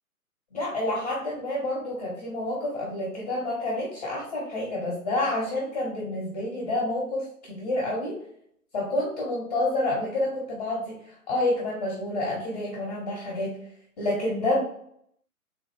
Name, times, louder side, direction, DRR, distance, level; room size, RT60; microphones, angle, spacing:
voice 1, 0.5-8.2 8.7-11.0 11.3-13.5 14.0-14.6, left 1 dB, 25° left, -5 dB, 0.8 m, -28 dB
3.6 x 2.3 x 3.2 m, 0.70 s
figure-of-eight pair, 125°, 44 cm